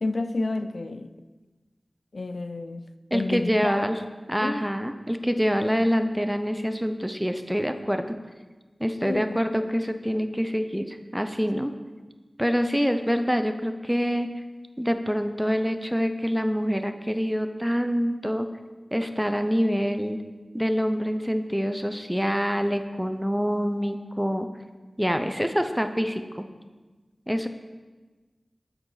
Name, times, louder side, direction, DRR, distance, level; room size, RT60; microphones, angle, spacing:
voice 1, 0.0-1.1 2.1-2.9 3.1-3.8 4.4-4.6 9.1-9.4, left 2 dB, 70° left, 9 dB, 0.4 m, -30 dB
voice 2, 3.1-4.0 4.3-8.2 8.8-11.7 12.4-14.3 14.8-18.5 18.9-20.2 20.5-24.5 25.0-26.5 27.3-27.5, equal, 5° right, 8 dB, 0.6 m, -26 dB
8.7 x 6.2 x 4.9 m, 1.3 s
wide cardioid pair, 60°, 0 cm